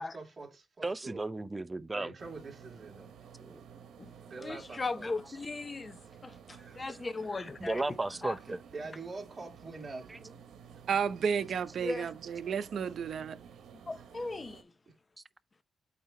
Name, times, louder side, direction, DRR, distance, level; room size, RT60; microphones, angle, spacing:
voice 1, 0.0-1.3 1.9-3.1 4.2-5.1 6.5-7.0 8.5-10.4 10.6-10.8 14.9-15.0, right 3 dB, 40° right, 2.7 m, -45 dB
voice 2, 0.8-2.1 3.4-3.6 7.6-8.6 10.1-10.2, right 2 dB, 20° right, 0.6 m, -34 dB
sound 1, 2.2-14.6, right 7 dB, 85° right, 1.1 m, -53 dB
voice 3, 4.4-6.3 6.8-7.8 8.2-8.4 11.8-12.1 13.9-14.6, left 3 dB, 30° left, 0.7 m, -37 dB
voice 4, 10.9-13.4, right 7 dB, 65° right, 0.7 m, -32 dB
8.6 x 2.9 x 4.3 m
cardioid pair, 90°, 0 cm